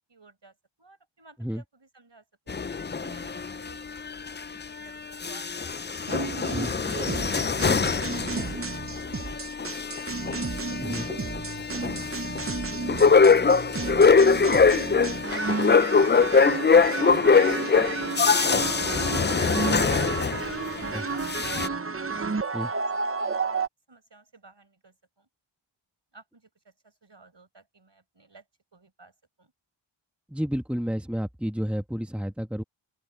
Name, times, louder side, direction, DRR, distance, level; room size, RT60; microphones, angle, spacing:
voice 1, 0.1-2.5 3.0-6.2 6.6-7.4 7.7-12.8 20.7-23.4 23.9-25.3 26.1-28.4 28.7-29.5, right 3 dB, 55° right, 6.5 m, -54 dB
sound 1, 2.5-4.8 5.1-20.8 21.2-21.7, left 5 dB, 25° left, 0.4 m, -23 dB
sound 2, 6.1-23.7, right 4 dB, 25° right, 0.7 m, -32 dB
voice 2, 30.3-32.6, equal, ahead, 1.5 m, -30 dB
open air
wide cardioid pair, 60°, 50 cm